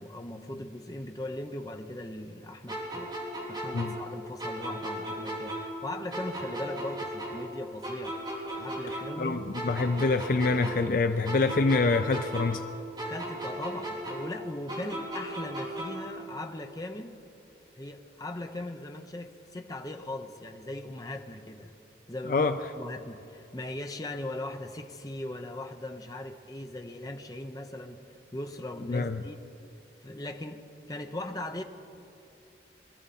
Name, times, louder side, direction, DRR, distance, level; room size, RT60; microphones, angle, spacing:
voice 1, 0.0-3.1 3.5-8.2 8.6-9.4 13.1-17.2 17.8-21.7 22.1-22.5 22.8-28.0 28.3-29.4 30.0-31.6, left 1 dB, 20° left, 5 dB, 0.7 m, -39 dB
sound 1, 2.7-5.8 6.1-9.3 9.5-12.7 13.0-16.1, right 1 dB, 25° right, 3.8 m, -36 dB
voice 2, 9.2-12.6 22.3-22.6 28.9-29.2, left 3 dB, 50° left, 9 dB, 0.4 m, -26 dB
22.5 x 13.5 x 4.2 m, 2.9 s
head